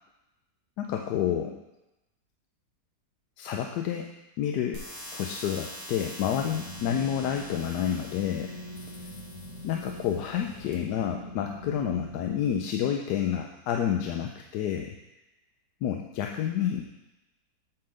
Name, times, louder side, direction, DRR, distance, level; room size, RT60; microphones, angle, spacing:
voice 1, 0.8-1.6 3.4-4.8 5.1-8.5 9.6-15.0 15.8-16.8, left 9 dB, 80° left, 3 dB, 1.2 m, -29 dB
sound 1, 4.7-10.7, equal, 10° left, 1.4 m, -45 dB
sound 2, 6.3-12.6, left 1 dB, 60° left, 1.3 m, -43 dB
8.6 x 3.7 x 6.5 m, 0.98 s
omnidirectional pair, 1.7 m